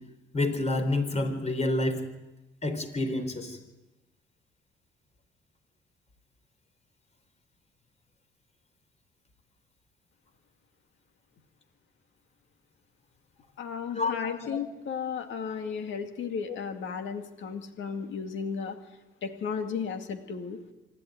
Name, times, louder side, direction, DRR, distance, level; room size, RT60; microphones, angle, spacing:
voice 1, 0.3-2.0 2.6-3.6 13.9-14.6, left 2 dB, 35° left, 7 dB, 4.4 m, -28 dB
voice 2, 13.6-18.8 19.2-20.6, left 6 dB, 75° left, 6 dB, 2.3 m, -34 dB
25.5 x 11.5 x 9.4 m, 1.0 s
cardioid pair, 90°, 20 cm